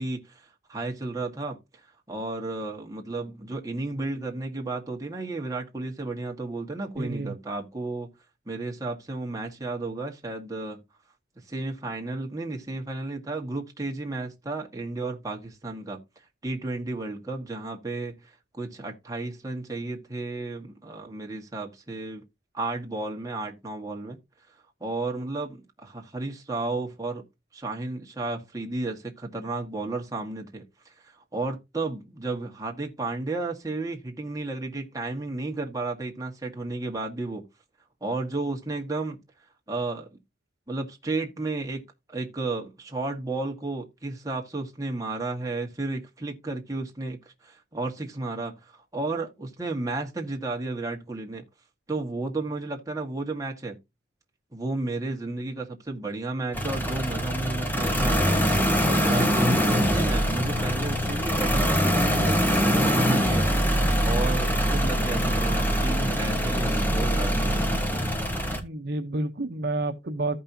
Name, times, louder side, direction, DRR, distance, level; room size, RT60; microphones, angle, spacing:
voice 1, 0.0-8.1 8.4-10.8 11.5-22.2 22.5-24.2 24.8-27.2 27.5-37.4 38.0-39.2 39.7-40.1 40.7-41.8 42.1-51.4 51.9-53.8 54.5-58.4 58.8-63.7 64.0-67.8, right 2 dB, 20° right, 1.6 m, -33 dB
voice 2, 7.0-7.3 68.6-70.4, right 2 dB, 60° right, 0.9 m, -30 dB
sound 1, 56.5-68.6, equal, 10° left, 1.2 m, -23 dB
14.5 x 5.4 x 2.8 m
head